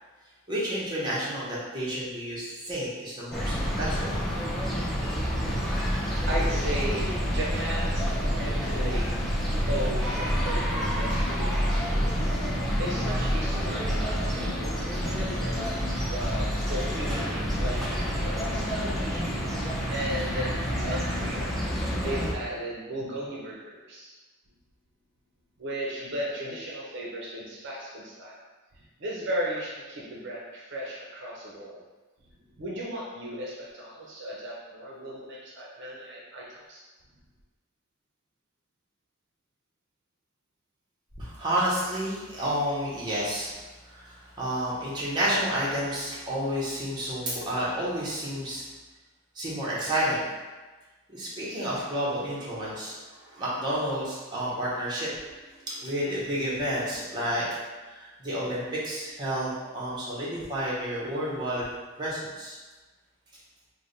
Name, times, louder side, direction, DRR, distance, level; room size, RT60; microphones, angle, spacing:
voice 1, 0.5-4.1 41.2-43.6 43.8-48.6 49.3-50.2 51.1-55.2 55.7-57.5 57.8-61.7 62.0-62.6, equal, 20° right, -8 dB, 0.9 m, -30 dB
sound 1, 3.3-22.3, equal, ahead, 0.5 m, -28 dB
voice 2, 5.5-9.2 9.7-11.9 12.8-19.3 19.9-21.5 22.0-24.1 25.6-28.4 29.0-31.8 32.6-36.8, equal, 55° right, -4 dB, 0.6 m, -36 dB
3.3 x 2.1 x 3.9 m, 1.3 s
head